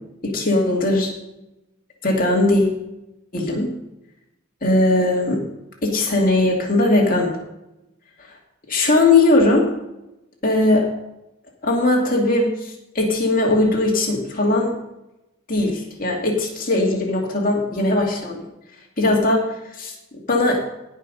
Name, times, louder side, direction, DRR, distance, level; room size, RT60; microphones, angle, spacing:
voice 1, 0.2-1.1 2.0-2.8 3.3-3.7 4.6-5.4 5.8-7.4 8.7-9.7 10.4-10.9 11.6-14.8 15.5-18.4 19.0-19.5 19.8-19.9 20.3-20.6, left 2 dB, 40° left, -1 dB, 2.6 m, -19 dB
17.0 x 5.8 x 5.4 m, 0.94 s
head